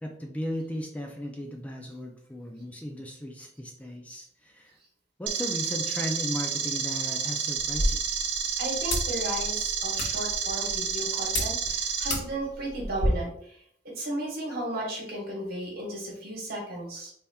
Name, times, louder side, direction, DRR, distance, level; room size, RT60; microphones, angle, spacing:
voice 1, 0.0-4.8 5.2-8.0, equal, 10° left, 1 dB, 0.4 m, -36 dB
sound 1, 5.3-12.1, right 6 dB, 90° right, 0.6 m, -30 dB
sound 2, 7.6-13.1, left 1 dB, 80° left, 1.5 m, -34 dB
voice 2, 8.6-13.6 13.8-17.1, right 1 dB, 55° right, -2 dB, 1.3 m, -34 dB
4.1 x 3.4 x 2.3 m, 0.67 s
head